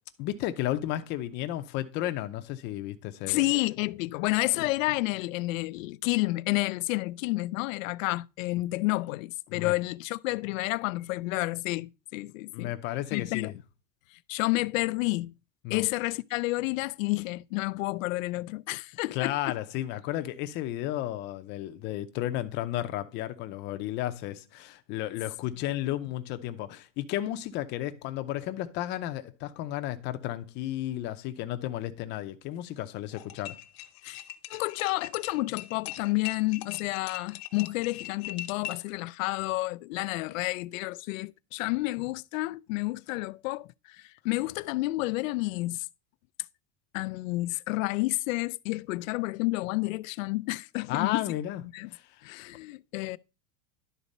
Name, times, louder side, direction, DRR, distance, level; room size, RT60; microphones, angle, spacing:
voice 1, 0.2-3.4 9.5-9.7 12.5-13.5 15.6-15.8 19.1-33.6 50.9-51.6 51.9-52.0, left 13 dB, 30° left, 0.6 m, -33 dB
voice 2, 3.3-12.7 13.1-13.5 14.3-15.3 15.7-19.5 34.0-34.2 34.5-45.9 46.9-51.3 51.7-51.9 52.2-53.2, left 21 dB, 85° left, 0.5 m, -30 dB
sound 1, 33.1-38.9, left 16 dB, 50° left, 0.9 m, -41 dB
11.5 x 4.0 x 5.3 m
supercardioid pair, 175°, 39 cm